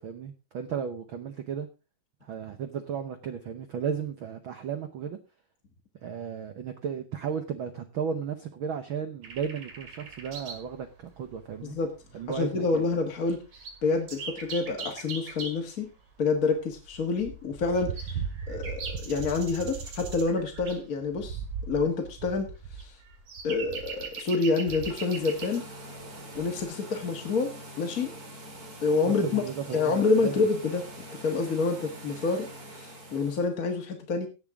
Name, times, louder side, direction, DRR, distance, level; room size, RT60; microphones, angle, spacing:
voice 1, 0.0-1.7 2.2-5.2 6.0-11.8 12.1-12.8 29.2-30.4, right 7 dB, 85° right, 8 dB, 1.1 m, -34 dB
sound 1, 9.2-10.7 11.0-11.1 11.8-11.9 12.0-12.4 12.9-13.0 13.2-15.7 16.3-25.6 26.3-26.6, right 5 dB, 50° right, 2.9 m, -38 dB
voice 2, 12.3-13.4 13.8-15.9 16.2-18.2 18.5-21.4 21.7-22.5 22.8-22.9 23.4-25.6 26.3-28.1 28.8-29.4 29.7-30.8 31.1-34.3, left 4 dB, 40° left, 2 dB, 1.2 m, -27 dB
sound 2, 24.6-33.5, right 1 dB, 30° right, 2.2 m, -44 dB
17.5 x 7.4 x 3.6 m, 0.31 s
omnidirectional pair, 3.7 m